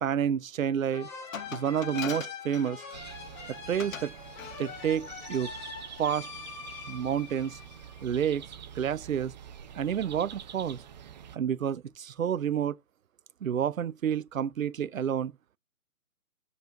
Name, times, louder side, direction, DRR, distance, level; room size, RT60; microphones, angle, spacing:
voice 1, 0.0-1.1 1.5-2.8 3.7-4.1 4.6-5.5 6.0-6.3 6.9-7.6 8.0-8.4 8.7-9.3 9.7-10.8 11.3-12.8 13.4-15.3, right 8 dB, 65° right, 0.8 m, -29 dB
sound 1, 0.9-8.4, left 6 dB, 30° left, 2.7 m, -43 dB
Glass, 1.3-3.2 3.8-4.1 4.4-4.6, left 7 dB, 65° left, 1.1 m, -40 dB
sound 2, 2.9-11.4, right 9 dB, 30° right, 0.7 m, -46 dB
6.9 x 5.6 x 4.6 m
figure-of-eight pair, 140°, 43 cm